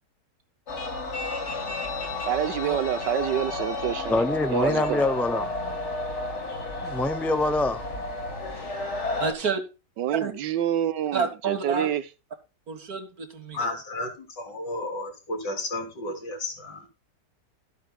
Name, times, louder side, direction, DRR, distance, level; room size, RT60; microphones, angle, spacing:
sound 1, 0.7-9.3, left 2 dB, 45° left, 2.0 m, -32 dB
voice 1, 2.3-4.2 4.5-5.1 10.0-12.0, right 10 dB, 85° right, 1.5 m, -27 dB
voice 2, 4.1-5.5 6.8-7.8, left 2 dB, ahead, 0.5 m, -25 dB
voice 3, 9.2-9.6 10.1-10.3 11.1-11.9 12.7-13.7, right 5 dB, 60° right, 2.3 m, -29 dB
voice 4, 13.5-16.9, left 2 dB, 85° left, 4.2 m, -33 dB
13.5 x 8.7 x 2.3 m
omnidirectional pair, 1.8 m